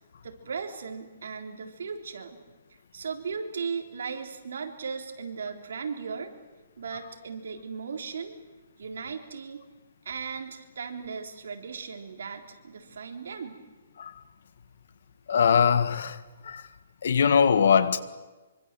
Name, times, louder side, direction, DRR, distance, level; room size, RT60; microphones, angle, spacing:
voice 1, 0.2-2.4 2.9-6.3 6.8-8.4 8.8-9.6 10.1-13.6, right 5 dB, 70° right, 3.7 m, -37 dB
voice 2, 15.3-16.7 17.0-18.0, left 7 dB, 65° left, 1.6 m, -22 dB
25.5 x 25.0 x 7.6 m
hypercardioid pair, 165°, 0 cm